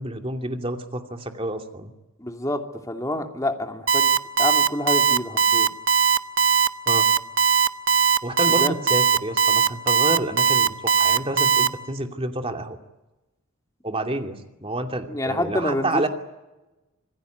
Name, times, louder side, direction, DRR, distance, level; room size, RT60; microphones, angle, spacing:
voice 1, 0.0-1.9 6.9-7.1 8.2-12.8 13.8-16.1, right 1 dB, 25° right, 5 dB, 2.6 m, -29 dB
voice 2, 2.2-4.1 4.4-5.7 8.6-8.7 15.1-16.1, left 1 dB, 15° left, 4 dB, 2.7 m, -27 dB
Alarm, 3.9-11.7, right 7 dB, 65° right, 1.2 m, -18 dB
27.0 x 20.0 x 9.4 m, 1.0 s
head